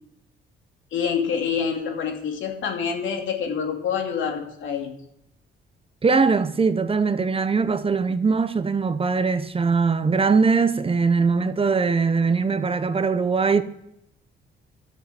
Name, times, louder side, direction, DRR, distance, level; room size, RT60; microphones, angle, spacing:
voice 1, 0.9-4.9, left 7 dB, 75° left, 2.6 m, -26 dB
voice 2, 6.0-13.6, right 4 dB, 30° right, 0.8 m, -21 dB
11.5 x 7.3 x 7.0 m
cardioid pair, 90°, 20 cm